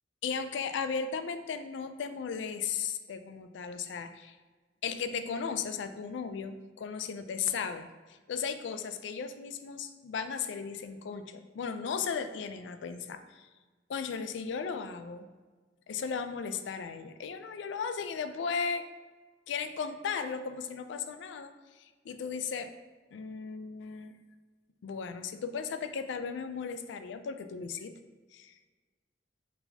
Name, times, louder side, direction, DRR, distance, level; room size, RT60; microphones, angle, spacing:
voice 1, 0.2-4.4 4.8-7.9 8.3-13.5 13.9-15.3 15.9-18.8 19.5-21.5 22.1-22.7 23.1-24.1 24.8-28.0 28.3-28.5, left 6 dB, 80° left, 10 dB, 0.3 m, -36 dB
4.5 x 4.0 x 2.7 m, 1.4 s
head